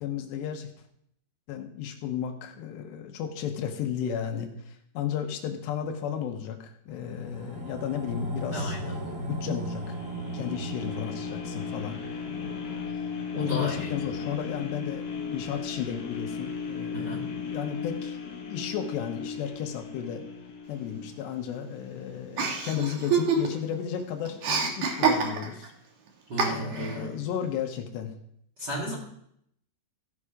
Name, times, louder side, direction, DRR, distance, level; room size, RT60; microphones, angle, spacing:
voice 1, 0.0-0.7 1.5-10.0 10.3-12.8 13.4-20.2 20.7-25.7 26.4-28.1, left 9 dB, 80° left, 4 dB, 3.1 m, -34 dB
sound 1, 6.9-17.5 17.9-18.0, right 1 dB, 85° right, 4.6 m, -39 dB
voice 2, 8.5-9.0 13.3-14.1 14.6-14.7 16.9-17.3 26.3-27.2 28.6-28.9, equal, 40° right, -4 dB, 1.7 m, -34 dB
sound 2, 9.8-21.9 22.4-22.5, left 6 dB, 60° left, 2.0 m, -37 dB
Chuckle chortle, 22.4-23.7 24.0-25.7 26.4-27.0, right 5 dB, 60° right, 2.1 m, -26 dB
15.5 x 5.6 x 4.9 m, 0.71 s
omnidirectional pair, 5.0 m